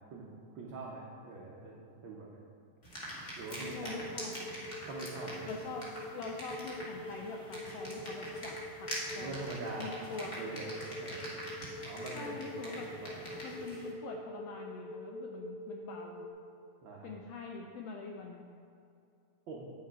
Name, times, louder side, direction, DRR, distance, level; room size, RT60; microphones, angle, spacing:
voice 1, 0.1-2.4 3.4-4.1 4.9-5.8 9.1-11.4 11.8-13.2 16.8-17.1 19.5-19.6, right 3 dB, 80° right, -3 dB, 1.1 m, -44 dB
sound 1, 2.8-13.9, equal, 30° left, 1.6 m, -44 dB
voice 2, 3.6-4.5 5.4-9.4 9.8-10.3 12.1-12.9 13.4-16.2 17.0-18.4, left 4 dB, 80° left, 1 dB, 1.4 m, -44 dB
sound 2, 3.6-16.3, equal, 50° left, 2.1 m, -44 dB
sound 3, 4.2-4.8 6.8-7.8 9.8-10.8 12.8-13.8, equal, 30° right, 1.1 m, -58 dB
9.6 x 6.4 x 4.6 m, 2.6 s
omnidirectional pair, 3.5 m